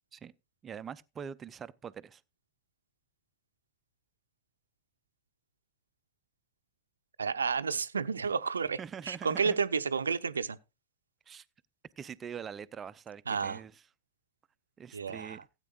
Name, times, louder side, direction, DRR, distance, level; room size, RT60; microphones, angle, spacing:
voice 1, 0.6-2.2 8.8-9.6 11.3-11.4 12.0-13.8 14.8-15.4, right 7 dB, 20° right, 0.5 m, -43 dB
voice 2, 7.2-8.8 9.1-10.6 13.3-13.6 14.9-15.4, right 5 dB, 75° right, 0.6 m, -31 dB
16.5 x 8.9 x 2.4 m
figure-of-eight pair, 90°, 0 cm